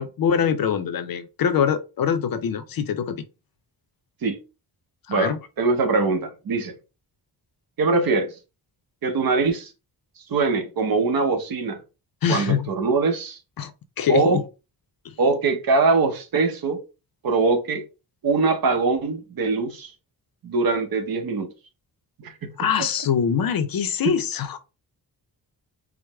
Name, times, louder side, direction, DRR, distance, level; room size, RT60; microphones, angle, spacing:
voice 1, 0.0-3.3 5.1-5.4 12.2-12.7 13.6-13.7 14.0-14.4 15.0-15.1 22.6-24.6, left 7 dB, 55° left, 0.5 m, -23 dB
voice 2, 5.6-6.7 7.8-8.3 9.0-9.7 10.3-11.8 12.3-13.4 14.1-14.4 15.2-16.8 17.2-17.8 18.2-19.9 20.4-21.5 22.2-22.5 24.0-24.1, right 4 dB, 55° right, 0.8 m, -22 dB
4.6 x 2.1 x 3.3 m
wide cardioid pair, 165°, 41 cm